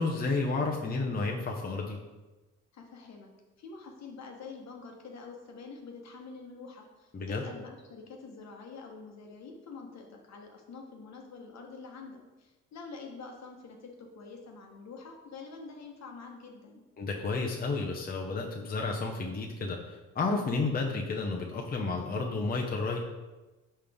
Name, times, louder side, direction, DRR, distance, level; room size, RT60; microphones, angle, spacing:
voice 1, 0.0-2.0 7.1-7.4 17.0-23.0, left 3 dB, 30° left, 0 dB, 0.7 m, -31 dB
voice 2, 2.7-3.3 3.6-16.8, left 4 dB, 60° left, 2 dB, 1.2 m, -46 dB
5.5 x 5.2 x 3.5 m, 1.1 s
cardioid pair, 90°, 30 cm